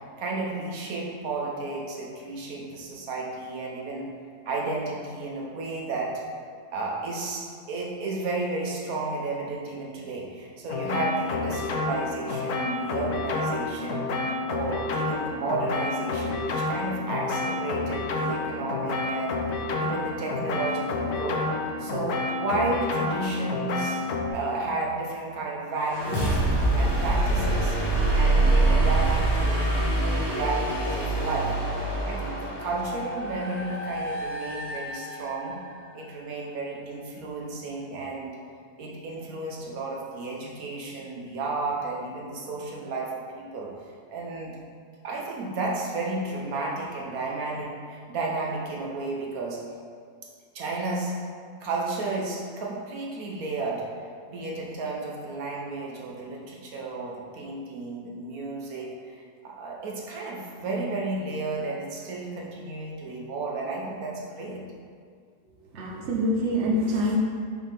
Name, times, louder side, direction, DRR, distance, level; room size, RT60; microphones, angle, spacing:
voice 1, 0.2-4.1 4.5-6.1 6.7-14.1 14.5-21.4 21.8-24.0 24.3-26.4 26.8-27.8 28.1-31.5 32.0-35.6 35.9-38.3 38.8-43.1 43.3-44.5 45.0-49.6 50.5-51.1 51.6-64.7, right 3 dB, 75° right, -2 dB, 1.3 m, -32 dB
sound 1, 10.7-24.3, left 3 dB, 90° left, 1.2 m, -29 dB
sound 2, 25.8-35.6, right 2 dB, 20° left, 1.2 m, -25 dB
voice 2, 65.7-67.2, equal, 55° right, -2 dB, 1.1 m, -25 dB
5.6 x 5.3 x 3.4 m, 2.1 s
omnidirectional pair, 1.5 m